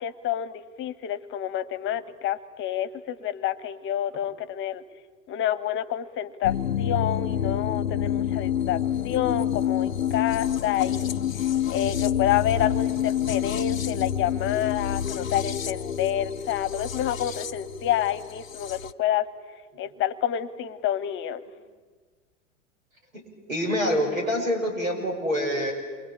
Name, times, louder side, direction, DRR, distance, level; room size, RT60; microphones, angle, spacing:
voice 1, 0.0-4.8 5.3-19.3 19.8-21.4, left 11 dB, 30° left, 16 dB, 1.2 m, -28 dB
sound 1, 6.4-18.9, left 9 dB, 80° left, 0.8 m, -28 dB
voice 2, 23.5-25.7, equal, 85° right, 3 dB, 7.0 m, -26 dB
28.0 x 23.0 x 8.6 m, 1.5 s
figure-of-eight pair, 95°, 39 cm